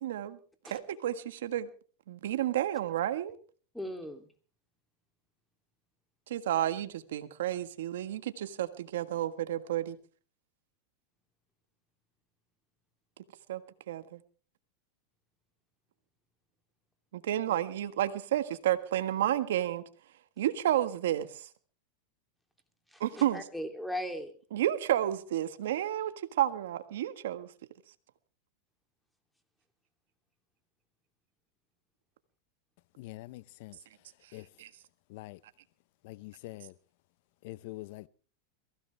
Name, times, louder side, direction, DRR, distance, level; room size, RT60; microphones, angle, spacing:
voice 1, 0.0-0.4 0.7-1.7 2.1-3.3 6.3-10.0 13.5-13.6 13.9-14.2 17.1-19.8 20.4-21.3 23.0-23.5 24.5-26.1 26.4-27.5 34.6-34.7, right 12 dB, 80° right, 1.5 m, -31 dB
voice 2, 3.7-4.3 17.3-17.5 22.9-24.3, equal, ahead, 3.0 m, -38 dB
voice 3, 33.0-33.8 34.3-34.5 35.1-35.4 36.0-36.7 37.4-38.1, left 19 dB, 65° left, 0.7 m, -44 dB
22.5 x 16.0 x 3.4 m
hypercardioid pair, 115°, 0 cm